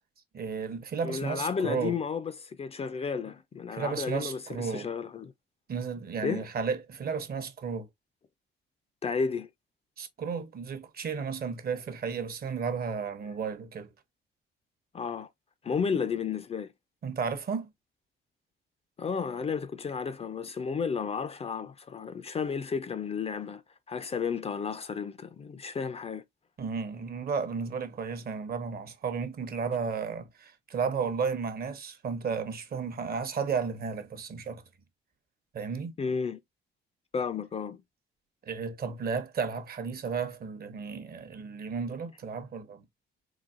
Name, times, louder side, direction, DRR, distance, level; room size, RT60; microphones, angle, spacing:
voice 1, 0.3-2.0 3.7-4.9 5.7-7.9 10.0-13.9 17.0-17.7 26.6-34.6 35.5-35.9 38.4-42.8, right 5 dB, 50° right, 0.8 m, -33 dB
voice 2, 1.0-5.3 6.2-6.5 9.0-9.5 14.9-15.3 15.6-16.7 19.0-23.6 23.9-26.2 36.0-36.4 37.1-37.8, left 6 dB, 30° left, 0.4 m, -32 dB
3.9 x 2.7 x 2.5 m
cardioid pair, 90°, 20 cm